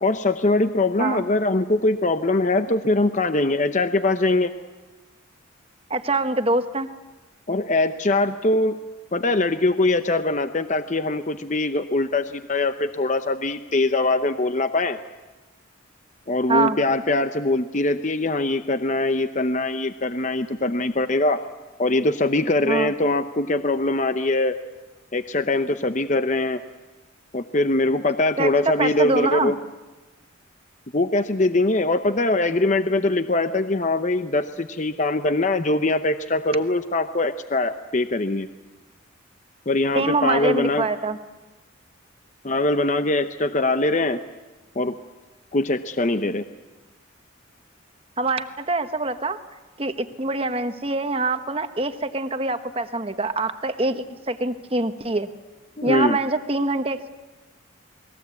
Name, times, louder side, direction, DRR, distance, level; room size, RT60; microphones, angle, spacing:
voice 1, 0.0-4.5 7.5-8.8 9.1-15.0 16.3-21.4 21.8-24.6 25.1-26.6 27.3-29.5 30.9-38.5 39.7-40.8 42.4-44.2 44.8-45.0 45.5-46.4 55.8-56.2, left 2 dB, 35° left, 9 dB, 0.8 m, -22 dB
voice 2, 5.9-6.9 16.5-16.8 22.7-22.9 28.4-29.5 39.9-41.2 48.2-49.4 49.8-55.3 55.8-57.1, right 2 dB, 25° right, 9 dB, 1.2 m, -24 dB
28.5 x 20.5 x 8.4 m, 1.2 s
head